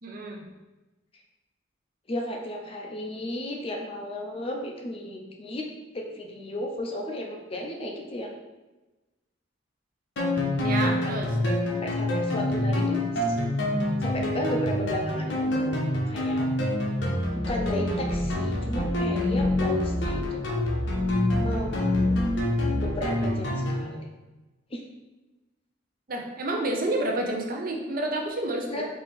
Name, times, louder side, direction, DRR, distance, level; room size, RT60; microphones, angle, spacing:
voice 1, 0.0-0.4 10.6-11.4 26.1-28.8, right 1 dB, 50° right, 1 dB, 0.6 m, -29 dB
voice 2, 2.1-5.7 5.9-8.3 10.8-11.1 11.8-13.0 13.3-13.4 14.0-15.7 16.1-16.5 17.5-20.7 21.4-22.2 22.8-24.1 24.7-24.8 28.7-28.9, left 1 dB, 30° left, 1 dB, 0.5 m, -34 dB
sound 1, 10.2-23.9, left 1 dB, 70° left, 0.7 m, -26 dB
4.2 x 2.7 x 3.6 m, 1.1 s
head